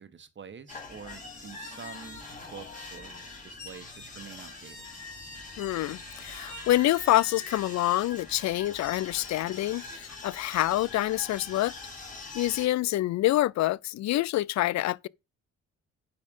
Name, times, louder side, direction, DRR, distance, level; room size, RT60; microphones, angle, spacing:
voice 1, 0.0-4.9 6.0-6.1, right 6 dB, 40° right, 1.3 m, -47 dB
sound 1, 0.7-12.7, left 3 dB, 25° left, 4.2 m, -43 dB
voice 2, 5.6-11.7 12.3-15.1, left 15 dB, 65° left, 0.5 m, -26 dB
9.6 x 4.4 x 5.5 m
cardioid pair, 90°, 30 cm